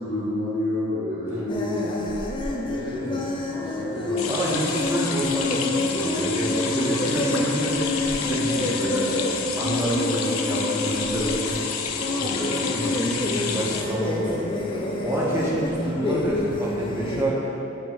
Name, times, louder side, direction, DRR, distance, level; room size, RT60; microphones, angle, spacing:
voice 1, 0.0-2.2 2.6-4.8 6.4-6.7 15.3-15.6, left 1 dB, 65° left, -11 dB, 1.1 m, -30 dB
sound 1, 1.5-17.2, left 2 dB, 25° left, 0.4 m, -28 dB
sound 2, 4.2-13.8, left 6 dB, 85° left, 0.4 m, -30 dB
voice 2, 4.3-9.1 9.6-11.6 12.1-14.5 15.0-17.4, right 1 dB, 15° right, -7 dB, 1.0 m, -28 dB
7.1 x 5.4 x 2.6 m, 3.0 s
head